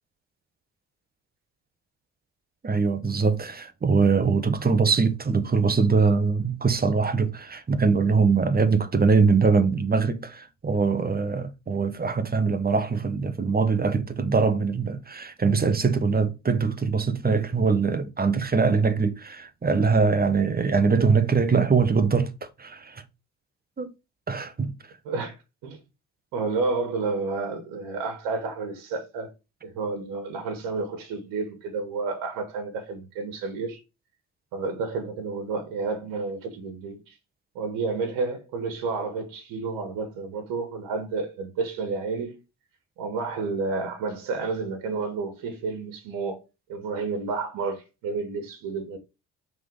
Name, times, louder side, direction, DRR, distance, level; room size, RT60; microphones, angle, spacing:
voice 1, 2.6-22.3 22.6-23.0 23.8-23.9 24.3-24.7, right 4 dB, 25° right, 1.3 m, -22 dB
voice 2, 25.1-25.4 25.6-25.8 26.3-29.3 29.6-33.8 34.5-37.1 37.6-42.4 43.0-46.4 46.7-49.0, right 4 dB, 75° right, 1.7 m, -30 dB
5.7 x 4.0 x 5.3 m
hypercardioid pair, 60°, 34 cm